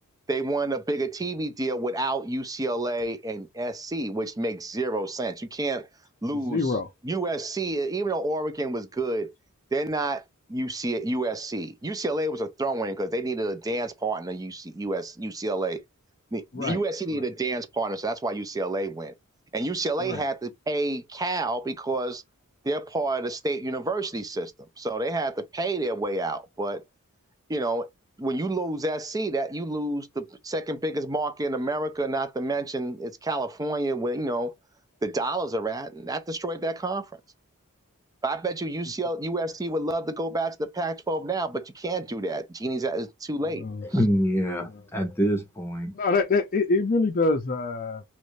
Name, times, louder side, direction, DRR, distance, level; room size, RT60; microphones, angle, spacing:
voice 1, 0.3-5.9 6.2-6.8 7.0-9.3 9.7-10.2 10.5-15.8 16.3-19.1 19.5-22.2 22.6-26.8 27.5-27.9 28.2-34.5 35.0-37.1 38.2-43.6, right 2 dB, 15° right, 0.5 m, -29 dB
voice 2, 6.5-6.9 16.5-16.8 17.1-17.2 20.0-20.2 43.6-43.8 44.7-44.8 45.9-48.0, left 3 dB, 40° left, 0.5 m, -25 dB
voice 3, 43.9-45.9, equal, 10° left, 0.9 m, -25 dB
3.1 x 2.6 x 3.1 m
head